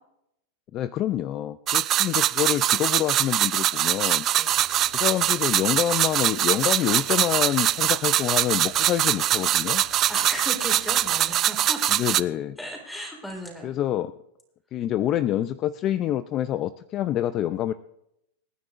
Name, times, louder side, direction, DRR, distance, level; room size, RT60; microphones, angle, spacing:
voice 1, 0.7-4.3 4.9-9.8 11.9-12.6 13.6-14.1 14.7-17.7, left 12 dB, 35° left, 14 dB, 0.4 m, -27 dB
sound 1, 1.7-12.2, right 12 dB, 30° right, 0.4 m, -23 dB
voice 2, 4.4-4.7 10.1-11.8 12.6-13.7, equal, 5° left, 1 dB, 3.7 m, -36 dB
sound 2, 4.5-11.3, left 4 dB, 65° left, 4.6 m, -49 dB
26.5 x 9.8 x 2.5 m, 0.80 s
supercardioid pair, 140°, 0 cm